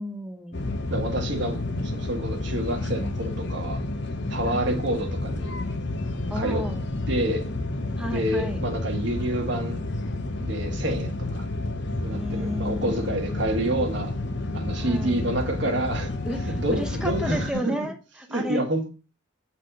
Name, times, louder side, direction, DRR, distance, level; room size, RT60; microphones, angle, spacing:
voice 1, 0.0-0.7 4.5-4.8 6.3-6.8 8.0-8.6 12.1-13.9 14.8-15.2 16.2-18.6, equal, 5° right, 0.8 m, -33 dB
sound 1, 0.5-17.5, left 2 dB, 60° left, 0.9 m, -30 dB
voice 2, 0.9-3.8 4.3-5.5 6.3-6.6 7.1-7.5 8.0-9.8 10.4-11.4 12.0-14.2 14.5-16.1 16.4-17.7 18.3-18.9, right 1 dB, 65° right, 1.5 m, -28 dB
7.9 x 4.3 x 5.3 m
head